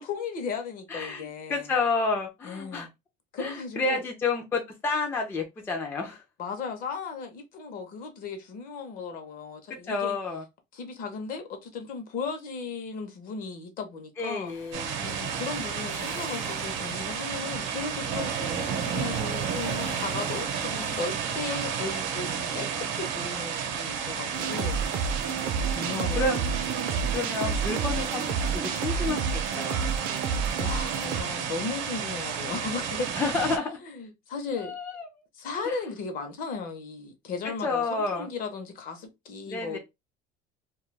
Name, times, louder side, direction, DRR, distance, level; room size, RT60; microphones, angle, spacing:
voice 1, 0.1-1.7 2.4-2.9 3.3-4.0 6.4-10.2 10.7-14.5 15.0-24.8 25.7-26.5 30.6-33.4 33.9-34.7 35.4-39.8, left 4 dB, 50° left, 0.6 m, -36 dB
voice 2, 0.9-2.9 3.4-6.2 9.9-10.4 14.2-15.0 18.4-18.6 20.6-21.0 24.4-25.0 26.2-26.4 27.1-28.3 28.5-29.8 33.2-33.8 34.6-35.2 35.7-35.8 37.6-38.3 39.5-39.8, left 3 dB, 10° left, 0.3 m, -30 dB
Waves surf, 14.5-22.6, left 5 dB, 90° left, 0.9 m, -46 dB
sound 1, 14.7-33.6, right 7 dB, 85° right, 0.7 m, -32 dB
sound 2, 24.3-31.2, right 6 dB, 50° right, 0.4 m, -30 dB
2.2 x 2.2 x 3.1 m
cardioid pair, 170°, 19 cm